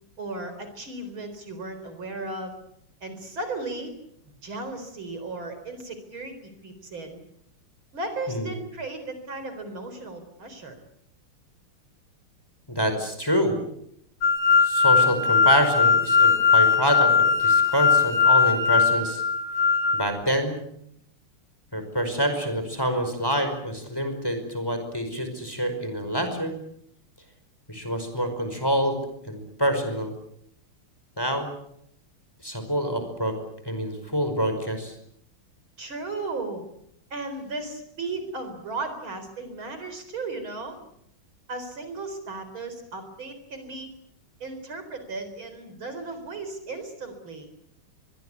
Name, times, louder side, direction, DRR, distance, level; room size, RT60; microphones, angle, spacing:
voice 1, 0.2-2.6 3.0-3.9 4.4-7.2 7.9-10.8 35.8-36.6 37.1-40.8 41.5-43.9 44.4-47.5, right 3 dB, 65° right, 9 dB, 4.9 m, -35 dB
voice 2, 12.7-13.6 14.6-19.2 19.9-20.6 21.7-26.5 27.7-30.1 31.2-31.5 32.4-33.4 33.6-34.9, equal, 10° left, 7 dB, 5.2 m, -26 dB
sound 1, 14.2-20.0, left 5 dB, 90° left, 3.7 m, -19 dB
25.0 x 22.0 x 8.2 m, 0.73 s
omnidirectional pair, 2.4 m